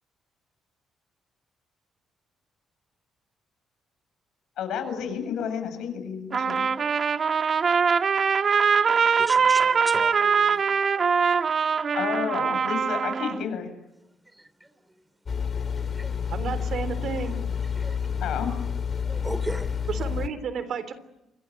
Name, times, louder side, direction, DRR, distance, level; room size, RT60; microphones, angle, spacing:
voice 1, 4.6-6.6 8.9-9.1 11.9-13.7 18.2-18.5, left 7 dB, 80° left, 9 dB, 7.7 m, -31 dB
Trumpet, 6.3-13.4, right 6 dB, 45° right, 1.3 m, -22 dB
voice 2, 9.2-10.7 15.8-16.1 17.8-18.0 19.1-19.7, right 1 dB, 10° right, 14 dB, 2.8 m, -36 dB
sound 1, 15.3-20.3, left 7 dB, 45° left, 2.4 m, -29 dB
voice 3, 16.3-17.4 19.9-20.9, right 6 dB, 65° right, 12 dB, 3.4 m, -31 dB
28.5 x 23.5 x 8.0 m, 0.88 s
cardioid pair, 90°, 0 cm